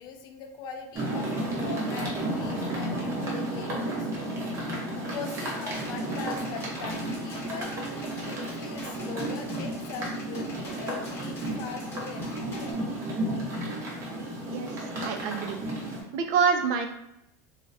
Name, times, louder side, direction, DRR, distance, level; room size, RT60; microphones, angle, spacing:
voice 1, 0.0-4.4 4.7-7.8 8.2-12.8, left 6 dB, 50° left, 5 dB, 0.4 m, -41 dB
sound 1, 0.9-16.0, right 1 dB, 30° right, 0.7 m, -32 dB
sound 2, 5.5-12.7, left 2 dB, 25° left, 0.8 m, -46 dB
voice 2, 15.0-15.6 16.1-16.9, right 6 dB, 65° right, 6 dB, 0.4 m, -26 dB
2.3 x 2.0 x 2.6 m, 0.83 s
supercardioid pair, 140°, 10 cm